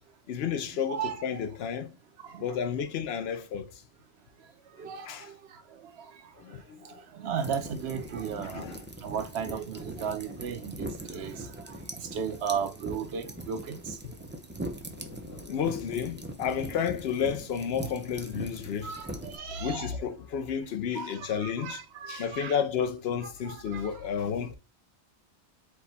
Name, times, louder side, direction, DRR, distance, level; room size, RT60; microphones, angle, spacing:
voice 1, 0.3-1.9 2.4-3.7 5.1-5.2 6.4-7.0 8.4-8.8 15.0-18.9 19.6-21.8 22.1-24.5, left 7 dB, 70° left, 0.8 m, -31 dB
voice 2, 0.9-1.2 2.3-2.6 4.8-5.1 7.2-8.7 9.0-11.3 12.1-14.0 18.8-20.0 20.9-22.6 23.5-23.8, right 7 dB, 70° right, 0.9 m, -35 dB
sound 1, 7.4-19.4, right 1 dB, 20° right, 0.3 m, -41 dB
4.6 x 2.2 x 4.1 m
omnidirectional pair, 1.1 m